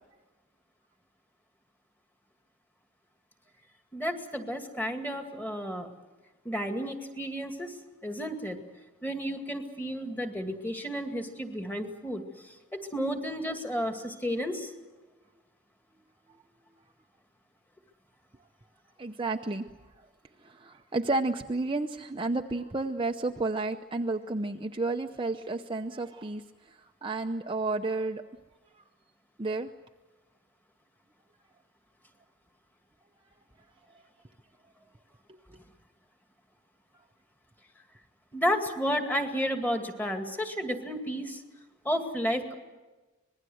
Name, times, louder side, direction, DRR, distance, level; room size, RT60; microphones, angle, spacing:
voice 1, 3.9-5.9 6.4-7.7 8.0-8.6 9.0-14.7 38.3-41.4 41.8-42.5, equal, 10° left, 5 dB, 2.2 m, -32 dB
voice 2, 19.0-19.6 20.4-26.4 26.7-28.2 29.4-29.7 35.3-35.4, right 2 dB, 25° right, 4 dB, 0.7 m, -31 dB
26.0 x 20.5 x 7.8 m, 1.2 s
head